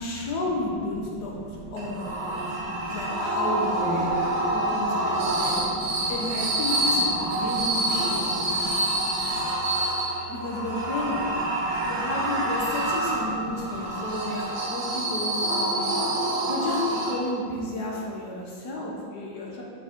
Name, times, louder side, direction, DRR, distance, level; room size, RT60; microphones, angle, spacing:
voice 1, 0.0-2.4 2.9-4.1 4.5-8.7 10.3-11.2 11.9-19.6, left 2 dB, 60° left, -3 dB, 1.4 m, -32 dB
voice 2, 0.8-3.1 3.8-6.3 6.8-10.2 11.2-12.0 12.6-14.4, right 2 dB, 70° right, -1 dB, 1.5 m, -39 dB
sound 1, 1.8-17.5, right 1 dB, 90° right, 2.0 m, -27 dB
6.3 x 5.6 x 4.4 m, 2.3 s
omnidirectional pair, 2.2 m